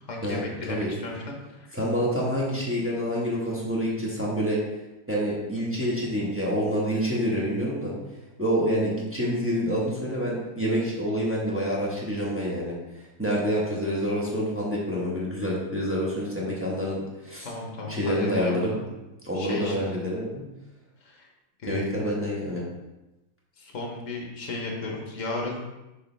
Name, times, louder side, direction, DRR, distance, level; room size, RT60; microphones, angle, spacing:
voice 1, 0.1-1.7 17.4-18.9 19.3-19.9 21.0-21.3 21.6-21.9 23.6-25.6, left 2 dB, 45° left, -1 dB, 1.2 m, -35 dB
voice 2, 1.7-4.6 5.1-7.9 8.4-12.8 13.2-17.5 17.8-18.8 19.2-20.4 21.7-22.6, equal, 10° right, -6 dB, 0.9 m, -27 dB
6.6 x 5.1 x 3.3 m, 1.0 s
omnidirectional pair, 2.4 m